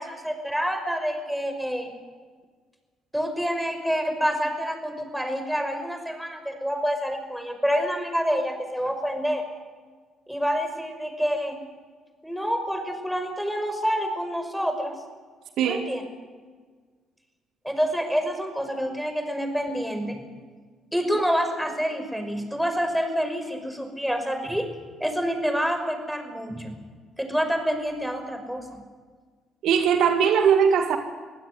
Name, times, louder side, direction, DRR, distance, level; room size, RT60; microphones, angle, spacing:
voice 1, 0.0-1.9 3.1-9.4 10.3-11.6 12.2-14.9 15.7-16.0 17.6-20.2 20.9-24.7 25.0-26.8 27.2-28.8, equal, ahead, 6 dB, 5.7 m, -27 dB
voice 2, 29.6-31.0, right 7 dB, 65° right, 6 dB, 1.9 m, -20 dB
24.5 x 16.0 x 9.7 m, 1.5 s
hypercardioid pair, 50°, 0 cm